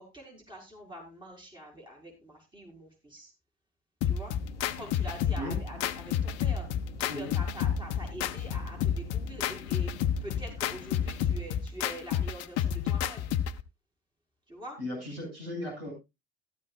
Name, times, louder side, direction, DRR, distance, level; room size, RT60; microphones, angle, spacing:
voice 1, 0.0-3.3 4.0-4.4 4.8-9.9 10.2-13.3 14.5-14.8, equal, 15° right, -1 dB, 5.8 m, -45 dB
sound 1, 4.0-13.6, left 9 dB, 55° left, 0.9 m, -30 dB
sound 2, 4.4-11.4, left 6 dB, 90° left, 0.8 m, -46 dB
voice 2, 14.8-15.9, left 1 dB, 70° right, 1 dB, 7.3 m, -36 dB
14.5 x 12.5 x 2.4 m, 0.24 s
figure-of-eight pair, 60°, 31 cm